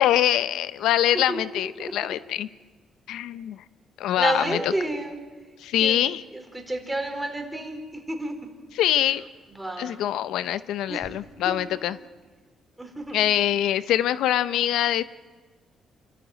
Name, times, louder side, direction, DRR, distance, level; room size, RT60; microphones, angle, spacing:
voice 1, 0.0-2.5 3.1-3.6 4.0-4.7 5.6-6.2 8.7-9.2 9.8-12.0 13.1-15.0, left 12 dB, 85° left, 15 dB, 0.6 m, -24 dB
voice 2, 4.2-5.2 5.8-6.0 6.3-7.8 8.1-8.3 9.5-10.0 10.9-11.1 11.4-11.6 12.8-13.2, right 1 dB, 10° right, 4 dB, 4.3 m, -30 dB
28.5 x 13.5 x 9.0 m, 1.4 s
cardioid pair, 90°, 0 cm